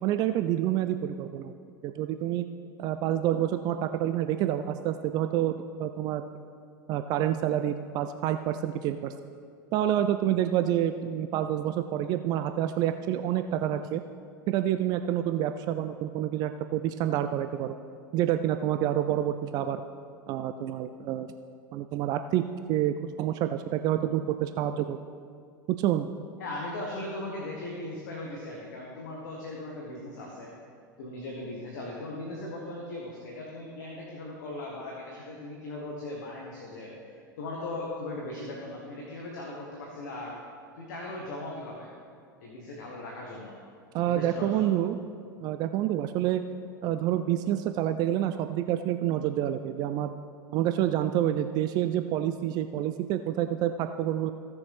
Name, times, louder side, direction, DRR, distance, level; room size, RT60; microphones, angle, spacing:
voice 1, 0.0-1.5 1.8-2.4 2.8-6.2 6.9-9.1 9.7-14.0 14.5-17.8 18.1-19.8 20.3-21.3 21.7-25.0 25.7-26.1 43.9-45.0 45.4-46.4 46.8-50.1 50.5-54.3, right 11 dB, 35° right, 9 dB, 0.4 m, -28 dB
voice 2, 26.4-30.5 31.0-40.4 40.8-41.9 42.4-43.5 44.0-44.7, left 2 dB, 60° left, -2 dB, 1.5 m, -38 dB
16.0 x 6.9 x 3.4 m, 2.3 s
figure-of-eight pair, 80°, 11 cm